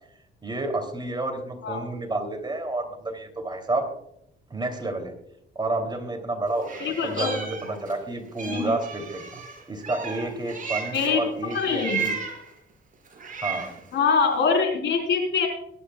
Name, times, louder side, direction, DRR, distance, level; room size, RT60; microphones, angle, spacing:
voice 1, 0.4-3.9 4.5-5.1 5.5-9.4 9.7-12.2 13.4-13.7, right 2 dB, 20° right, 4 dB, 3.0 m, -30 dB
Meow, 6.6-8.0 8.4-11.1 11.5-12.5 13.0-13.9, right 6 dB, 40° right, 5.6 m, -34 dB
voice 2, 6.8-7.3 8.4-8.7 10.9-11.2 11.5-12.0 13.9-15.5, left 5 dB, 70° left, 3 dB, 4.2 m, -23 dB
22.5 x 10.5 x 2.4 m, 0.76 s
cardioid pair, 90°, 20 cm